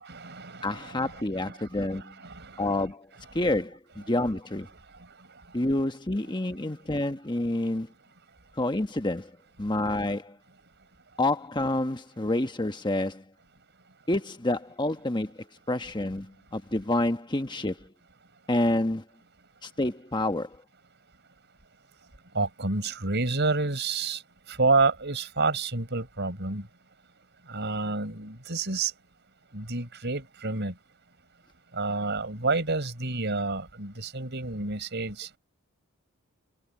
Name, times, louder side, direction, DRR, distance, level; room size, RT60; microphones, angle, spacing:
voice 1, 0.0-2.8 22.3-24.2 24.5-26.7 27.5-28.9 29.5-30.7 31.7-35.3, right 3 dB, 50° right, 5.7 m, -29 dB
voice 2, 0.6-2.2 2.6-3.1 3.3-4.7 5.5-7.9 8.6-9.3 9.6-10.4 11.2-13.2 14.1-15.4 15.7-17.9 18.5-19.0 19.6-20.6, left 1 dB, 20° left, 1.3 m, -28 dB
head